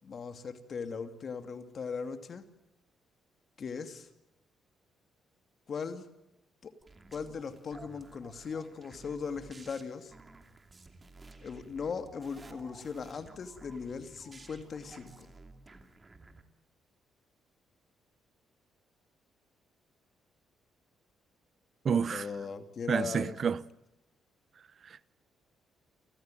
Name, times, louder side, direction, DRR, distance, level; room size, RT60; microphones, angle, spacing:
voice 1, 0.0-2.4 3.6-4.1 5.7-6.1 6.6-6.7 7.1-10.1 11.4-15.1 21.9-23.4, left 5 dB, 50° left, 2.6 m, -39 dB
sound 1, 6.8-16.4, right 3 dB, 25° right, 2.9 m, -54 dB
voice 2, 21.8-22.3 22.9-23.6 24.8-25.1, right 7 dB, 50° right, 0.9 m, -29 dB
29.0 x 15.0 x 9.1 m
cardioid pair, 90°, 0 cm